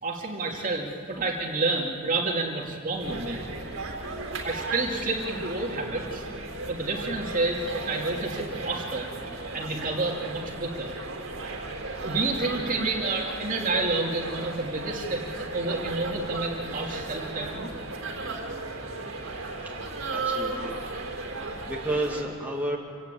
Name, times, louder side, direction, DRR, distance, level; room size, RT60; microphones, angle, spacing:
voice 1, 0.0-3.5 4.4-6.3 6.6-9.1 9.5-10.9 12.0-17.7, right 3 dB, 40° right, 0 dB, 2.8 m, -29 dB
sound 1, 3.0-22.2, right 3 dB, 80° right, 3.5 m, -35 dB
voice 2, 20.1-20.8 21.2-22.8, right 1 dB, 10° right, -3 dB, 2.3 m, -31 dB
27.0 x 17.0 x 8.5 m, 2.3 s
head